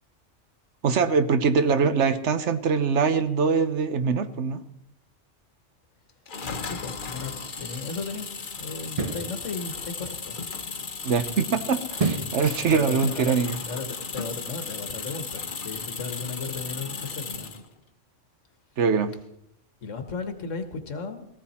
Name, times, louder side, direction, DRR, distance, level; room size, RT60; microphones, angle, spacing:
voice 1, 0.8-4.6 11.0-13.6 18.8-19.1, right 5 dB, 70° right, 11 dB, 1.2 m, -23 dB
sound 1, 6.3-17.7, left 5 dB, 45° left, 1.1 m, -35 dB
voice 2, 6.6-8.3 8.6-10.4 12.7-17.5 19.8-21.3, left 4 dB, 90° left, 7 dB, 1.8 m, -35 dB
sound 2, 7.1-7.2 8.8-9.3 12.0-12.4 12.9-13.0, right 4 dB, 35° right, 0.9 m, -27 dB
18.5 x 14.5 x 4.3 m, 0.75 s
omnidirectional pair, 1.2 m